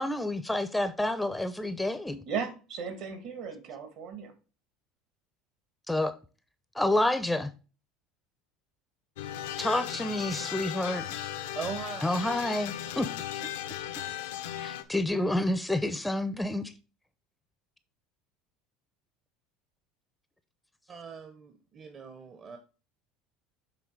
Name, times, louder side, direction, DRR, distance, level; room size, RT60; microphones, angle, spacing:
voice 1, 0.0-2.2 5.9-6.1 6.7-7.5 9.6-11.1 12.0-13.1 14.6-16.7, left 1 dB, 5° left, 0.5 m, -29 dB
voice 2, 2.3-4.3, right 6 dB, 65° right, 2.0 m, -36 dB
sound 1, 9.2-14.8, left 11 dB, 90° left, 0.7 m, -36 dB
voice 3, 11.5-12.3 20.9-22.6, right 6 dB, 40° right, 0.9 m, -40 dB
7.3 x 3.3 x 4.6 m
supercardioid pair, 100°, 0 cm